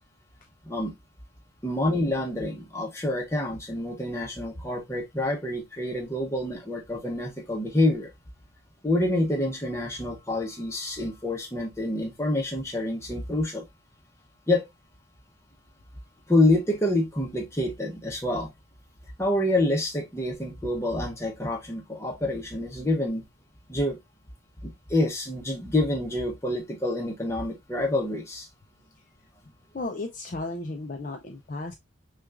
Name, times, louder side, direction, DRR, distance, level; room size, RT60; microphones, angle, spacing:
voice 1, 1.6-8.1 8.8-13.7 14.5-14.7 16.3-18.5 19.2-23.3 23.7-24.0 24.6-28.5, left 1 dB, 15° left, 0.9 m, -27 dB
voice 2, 29.7-31.7, left 2 dB, 40° left, 0.5 m, -34 dB
5.9 x 2.4 x 2.3 m
head